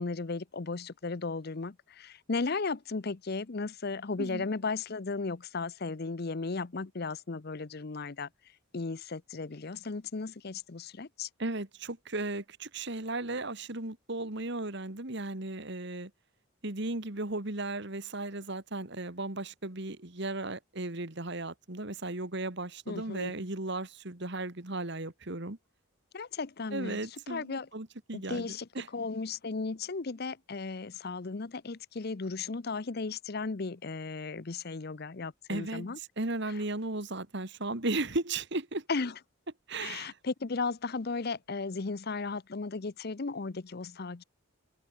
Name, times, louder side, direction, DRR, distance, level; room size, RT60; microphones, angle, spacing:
voice 1, 0.0-8.3 8.7-11.3 22.9-23.3 26.1-27.0 27.3-27.7 28.1-28.7 28.9-36.0 38.9-39.1 39.8-44.2, left 4 dB, 45° left, 0.7 m, -35 dB
voice 2, 11.4-16.1 16.6-25.6 26.7-28.9 35.5-38.8 39.7-40.2, right 2 dB, 55° right, 2.1 m, -36 dB
head